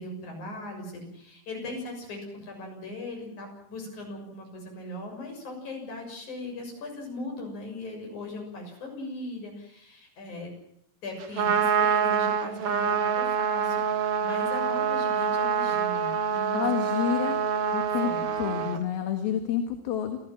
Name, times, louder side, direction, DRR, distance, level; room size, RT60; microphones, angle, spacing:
voice 1, 0.0-10.5 11.0-16.6 17.4-17.7 18.0-18.2 18.6-18.8 19.4-19.5, left 2 dB, 45° left, 2 dB, 7.9 m, -39 dB
Trumpet, 11.2-18.8, right 7 dB, 55° right, 1.6 m, -26 dB
voice 2, 16.5-17.4 17.7-18.1 18.4-20.2, left 9 dB, 70° left, 6 dB, 3.6 m, -29 dB
28.5 x 15.5 x 7.5 m, 0.72 s
omnidirectional pair, 4.6 m